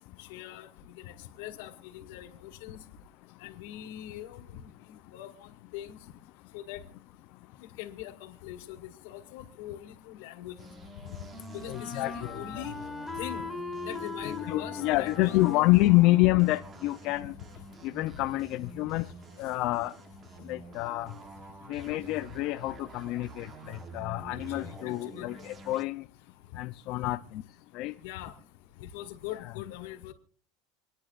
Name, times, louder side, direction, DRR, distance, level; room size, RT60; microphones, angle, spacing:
voice 1, 0.2-2.8 3.4-6.0 6.5-6.8 7.6-10.6 11.5-12.8 13.2-13.4 13.9-15.7 24.3-25.4 26.5-26.6 28.0-28.4 28.8-30.1, left 13 dB, 75° left, 2.0 m, -43 dB
Wind instrument woodwind instrument, 10.4-17.2, left 4 dB, 5° left, 2.6 m, -41 dB
sound 1, 10.6-25.8, right 3 dB, 25° right, 1.1 m, -48 dB
voice 2, 11.7-12.6 14.2-17.3 17.8-19.0 19.4-19.9 20.5-21.1 21.7-26.0 26.6-27.2 27.7-27.9 29.3-29.5, left 19 dB, 50° left, 0.5 m, -27 dB
27.0 x 10.0 x 2.5 m
supercardioid pair, 160°, 0 cm